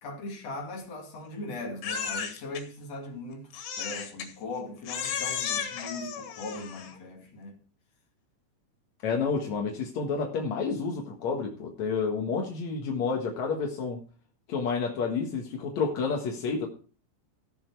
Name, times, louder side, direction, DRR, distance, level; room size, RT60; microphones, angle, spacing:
voice 1, 0.0-7.6, left 2 dB, 40° left, 3.0 m, -39 dB
Crying sobbing, 1.8-2.6 3.5-4.3 4.9-7.0, left 7 dB, 85° left, 4.1 m, -34 dB
voice 2, 9.0-14.0 14.5-16.7, left 5 dB, 60° left, 2.0 m, -30 dB
16.0 x 7.3 x 4.6 m
omnidirectional pair, 5.4 m